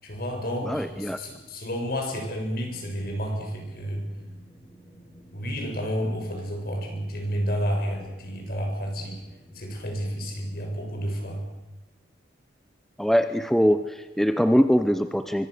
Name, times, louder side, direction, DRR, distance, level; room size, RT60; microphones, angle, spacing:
voice 1, 0.0-4.0 5.3-9.2 9.5-11.5, equal, 55° left, 2 dB, 7.0 m, -30 dB
voice 2, 0.7-1.2 13.0-15.5, equal, ahead, 9 dB, 0.8 m, -22 dB
sound 1, 2.6-10.4, equal, 25° left, 6.9 m, -51 dB
24.5 x 24.5 x 6.8 m, 1.1 s
head